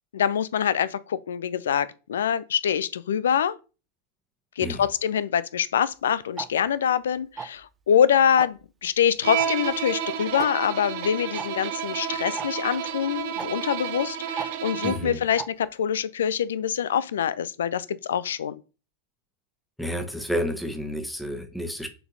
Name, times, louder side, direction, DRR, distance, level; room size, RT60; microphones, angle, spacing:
voice 1, 0.1-3.6 4.6-18.6, left 8 dB, 65° left, 0.5 m, -25 dB
Tick-tock, 6.4-6.5 7.4-7.7 8.4-8.6 9.4-9.5 9.8-9.9 10.4-10.5 11.4-11.5 12.4-12.5 13.4-13.5 14.4-14.5 15.4-15.5, right 6 dB, 20° right, 0.5 m, -33 dB
Bowed string instrument, 9.2-15.2, right 9 dB, 50° right, 0.9 m, -31 dB
voice 2, 14.8-15.2 19.8-21.9, equal, ahead, 1.3 m, -30 dB
6.5 x 4.3 x 4.0 m
figure-of-eight pair, 90°, 0 cm